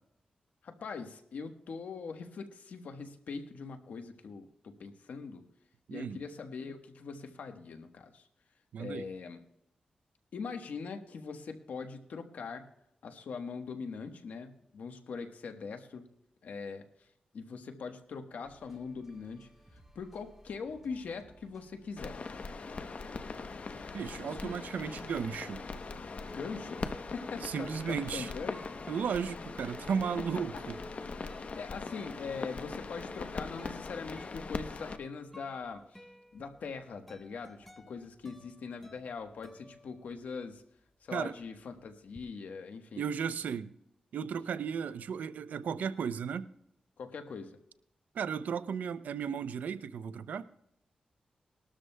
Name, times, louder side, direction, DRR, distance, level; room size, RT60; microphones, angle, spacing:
voice 1, 0.6-5.4 5.9-8.3 8.8-9.4 10.3-12.7 13.0-16.0 16.4-16.8 17.3-19.5 19.9-22.2 24.2-24.5 26.2-28.7 31.6-36.0 36.3-40.6 41.0-43.1 47.0-47.6, left 5 dB, 80° left, 1.2 m, -42 dB
voice 2, 8.7-9.0 23.9-25.6 27.4-28.3 28.9-30.8 41.1-41.3 43.0-43.7 44.1-46.5 48.1-50.5, right 7 dB, 90° right, 0.5 m, -35 dB
sound 1, 18.4-31.6, right 1 dB, 10° right, 2.7 m, -61 dB
sound 2, 22.0-35.0, left 4 dB, 60° left, 0.8 m, -41 dB
sound 3, 26.3-40.5 40.8-42.3, equal, 5° left, 1.0 m, -55 dB
20.0 x 12.5 x 2.2 m
cardioid pair, 60°, 3 cm